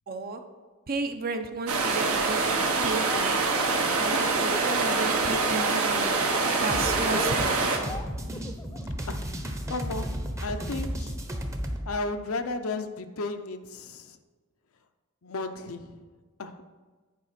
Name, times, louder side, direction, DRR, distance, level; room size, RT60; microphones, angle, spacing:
voice 1, 0.1-0.4 0.9-3.4 4.0-6.2 6.6-7.6, right 3 dB, 40° right, 6 dB, 0.7 m, -33 dB
sound 1, 1.7-7.8, right 3 dB, 70° right, 1.2 m, -25 dB
Laughter, 2.8-3.2 3.5-5.0 5.3-5.7 6.0-8.9, left 2 dB, 15° left, 0.3 m, -38 dB
sound 2, 6.7-11.8, equal, 15° right, 0.8 m, -34 dB
voice 2, 9.7-11.2 11.9-14.2 15.2-16.0 16.4-16.7, left 3 dB, 70° left, 8 dB, 0.7 m, -34 dB
9.5 x 4.8 x 5.9 m, 1.3 s
head